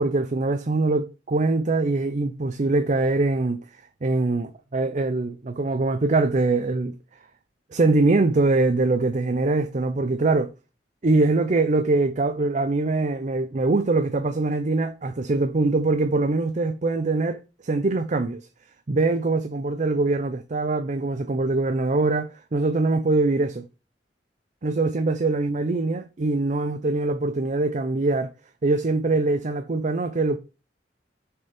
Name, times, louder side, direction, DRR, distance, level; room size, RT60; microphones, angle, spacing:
voice 1, 0.0-3.6 4.0-6.9 7.7-10.5 11.0-18.4 18.9-23.6 24.6-28.3 28.6-30.4, right 3 dB, 45° right, 0.6 m, -23 dB
6.6 x 4.5 x 5.0 m
head